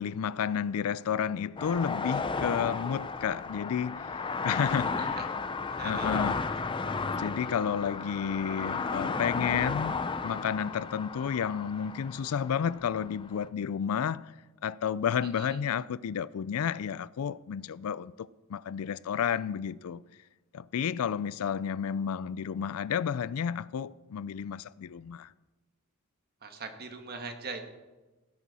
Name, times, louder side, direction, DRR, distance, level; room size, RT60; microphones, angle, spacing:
voice 1, 0.0-5.3 5.8-6.5 7.2-14.3 14.6-20.0 20.5-25.3, left 8 dB, 80° left, 0.4 m, -31 dB
sound 1, 1.6-13.5, left 4 dB, 20° left, 0.5 m, -34 dB
voice 2, 5.7-6.1 15.4-15.5 26.4-27.6, right 4 dB, 45° right, 1.5 m, -41 dB
17.0 x 10.0 x 4.2 m
head